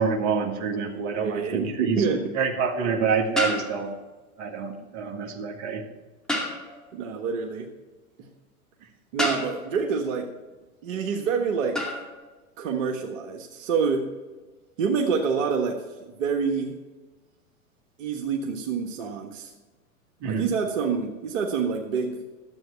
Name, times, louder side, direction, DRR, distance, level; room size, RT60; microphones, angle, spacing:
voice 1, 0.0-2.0 2.4-3.9 4.4-5.8 20.2-20.4, right 5 dB, 40° right, 3 dB, 1.8 m, -27 dB
sound 1, 0.9-1.1 3.4-4.2 6.3-6.9 9.2-9.8 11.7-12.1, left 1 dB, ahead, 2.2 m, -29 dB
voice 2, 0.9-2.2 6.9-7.7 8.2-8.3 9.1-10.3 10.8-12.0 12.6-14.1 14.8-15.8 16.2-16.8 18.0-19.5 20.2-22.2, right 5 dB, 60° right, 2 dB, 1.5 m, -27 dB
12.5 x 8.0 x 4.5 m, 1.2 s
hypercardioid pair, 105°, 44 cm